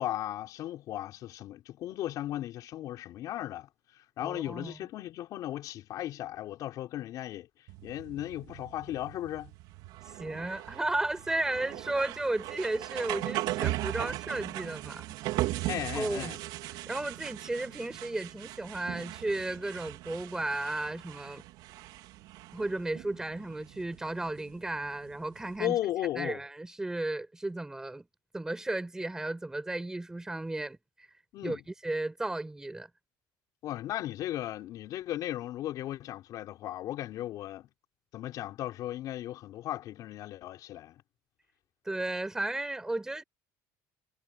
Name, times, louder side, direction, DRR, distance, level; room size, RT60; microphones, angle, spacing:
voice 1, 0.0-7.5 7.8-9.5 15.7-16.4 25.6-26.4 31.3-31.6 33.6-37.7 38.1-41.0, left 13 dB, 50° left, 5.0 m, -36 dB
voice 2, 4.2-4.8 10.2-15.1 15.9-16.3 16.9-21.4 22.5-25.8 26.2-28.1 28.3-30.8 31.4-32.9 41.9-43.2, right 2 dB, 5° right, 7.0 m, -34 dB
sound 1, 7.7-25.6, right 17 dB, 65° right, 4.4 m, -39 dB
cardioid pair, 165°, 8 cm